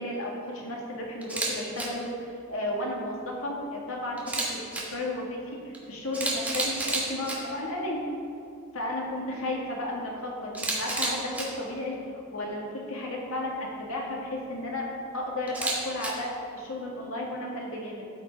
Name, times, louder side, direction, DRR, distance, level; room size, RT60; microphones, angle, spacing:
voice 1, 0.0-4.6 4.9-8.0 8.7-12.0 12.3-14.9 15.1-18.1, left 1 dB, 80° left, -2 dB, 1.9 m, -33 dB
Camera, 1.2-1.5 1.8-1.9 4.2-4.8 5.7-5.8 6.1-7.4 10.5-11.4 15.5-16.1, right 2 dB, 5° right, 1.2 m, -29 dB
12.5 x 5.4 x 4.7 m, 2.4 s
head